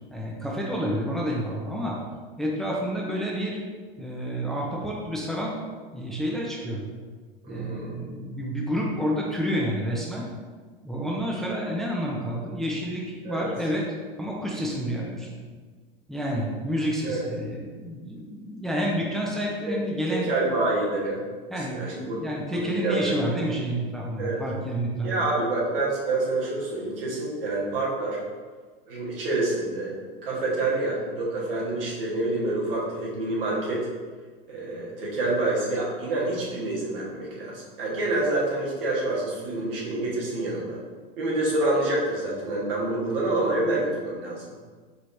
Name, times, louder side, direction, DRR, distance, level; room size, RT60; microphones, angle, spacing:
voice 1, 0.1-2.0 2.4-3.6 4.0-5.5 5.9-6.9 7.5-10.2 10.8-13.9 14.2-15.4 16.1-20.3 21.5-25.2, equal, ahead, -3 dB, 0.6 m, -29 dB
voice 2, 7.4-8.0 13.2-13.5 17.0-17.3 19.7-19.8 20.1-21.2 21.7-22.2 22.5-23.2 24.2-24.4 25.0-28.2 28.9-29.9 30.2-33.9 34.5-40.8 41.2-44.4, right 2 dB, 75° right, -5 dB, 1.4 m, -27 dB
4.8 x 3.1 x 2.6 m, 1.5 s
hypercardioid pair, 100°, 29 cm